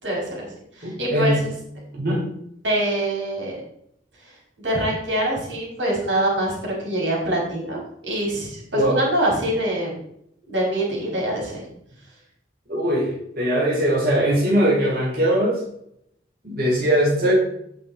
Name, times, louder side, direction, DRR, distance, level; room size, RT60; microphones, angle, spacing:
voice 1, 0.0-0.5 0.8-1.3 2.6-3.6 4.2-10.0 10.5-11.6, right 1 dB, 90° right, -3 dB, 5.4 m, -24 dB
voice 2, 0.8-1.4 1.9-2.3 8.7-9.0 12.7-15.6 16.4-17.3, right 1 dB, 55° right, -5 dB, 4.5 m, -21 dB
17.5 x 6.3 x 4.3 m, 0.74 s
head